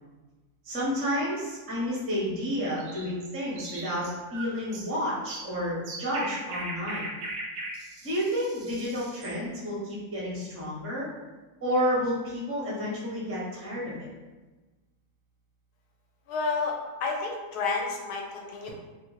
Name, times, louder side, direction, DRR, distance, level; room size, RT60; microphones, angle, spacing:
voice 1, 0.6-7.0 8.0-11.1 11.6-14.1, equal, 20° right, -5 dB, 0.4 m, -30 dB
sound 1, 2.8-9.4, right 2 dB, 85° right, 1.1 m, -39 dB
voice 2, 16.3-16.7 17.0-18.7, left 4 dB, 80° left, 1 dB, 1.1 m, -30 dB
2.8 x 2.4 x 3.1 m, 1.2 s
omnidirectional pair, 1.7 m